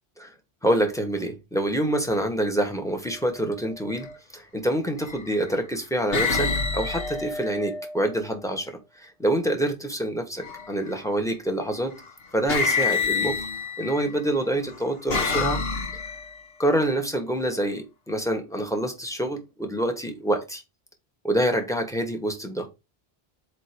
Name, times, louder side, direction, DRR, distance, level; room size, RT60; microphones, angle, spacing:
voice 1, 0.6-4.1 4.3-11.9 12.3-13.4 13.8-15.6 16.6-20.6 21.2-22.7, right 1 dB, 5° left, 6 dB, 1.4 m, -26 dB
sound 1, 3.8-4.1 5.0-5.5 6.1-8.2 10.4-10.9 12.0-12.1 12.5-14.1 14.7-16.4, left 4 dB, 65° left, 1.5 m, -27 dB
7.5 x 3.1 x 5.1 m, 0.25 s
omnidirectional pair, 1.1 m